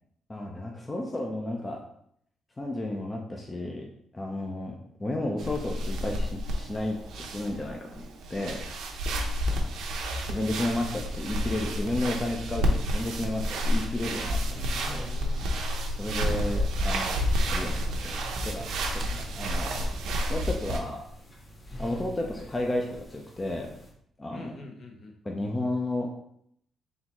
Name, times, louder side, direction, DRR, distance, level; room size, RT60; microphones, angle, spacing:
voice 1, 0.3-1.8 2.6-3.8 4.1-8.0 8.3-8.6 8.9-9.0 10.3-14.6 14.9-15.1 16.0-17.1 17.5-18.2 18.4-19.9 20.3-21.0 21.8-23.7 24.2-24.5 25.2-26.1, left 1 dB, 20° left, 1 dB, 0.6 m, -32 dB
sound 1, 5.4-20.8, equal, 80° right, 0.7 m, -30 dB
voice 2, 9.4-10.7 14.4-15.5 22.3-22.5 24.3-25.1, left 2 dB, 55° left, 2 dB, 0.9 m, -47 dB
sound 2, 13.6-19.9, right 2 dB, 40° right, 0.7 m, -42 dB
sound 3, 16.0-23.9, equal, 40° left, 1.4 m, -48 dB
4.0 x 4.0 x 3.0 m, 0.70 s
cardioid pair, 90°, 0 cm